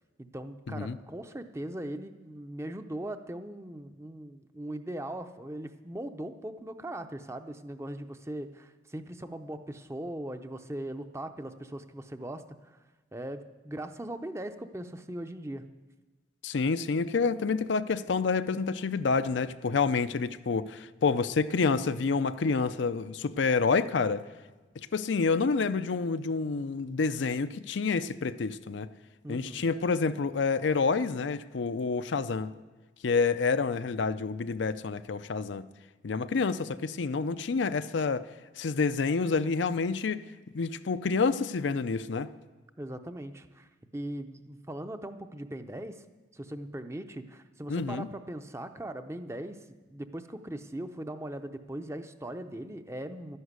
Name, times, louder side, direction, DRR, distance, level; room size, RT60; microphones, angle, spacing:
voice 1, 0.2-12.8 13.1-15.6 29.2-29.7 42.8-46.0 46.3-49.6 49.9-53.4, right 1 dB, 15° right, 0.6 m, -39 dB
voice 2, 16.4-24.2 24.9-28.9 29.3-32.5 33.0-35.7 36.0-38.3 38.6-40.2 40.5-42.3 47.7-48.1, left 4 dB, 75° left, 0.5 m, -28 dB
12.0 x 11.0 x 8.1 m
head